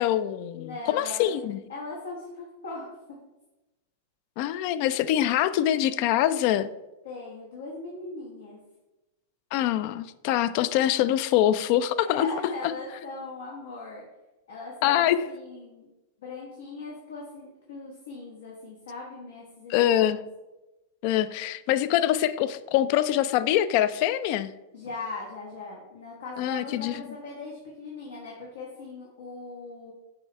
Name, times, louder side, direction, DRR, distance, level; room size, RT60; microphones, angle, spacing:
voice 1, 0.0-1.6 4.4-6.7 9.5-12.3 12.6-12.7 14.8-15.2 19.7-20.2 21.0-24.5 26.4-26.9, left 12 dB, 55° left, 15 dB, 0.4 m, -24 dB
voice 2, 0.5-1.3 1.7-3.2 7.0-8.6 12.0-14.0 14.5-15.9 16.2-20.1 24.7-29.9, left 3 dB, 85° left, -4 dB, 1.4 m, -39 dB
8.0 x 3.2 x 4.5 m, 1.0 s
hypercardioid pair, 115°, 0 cm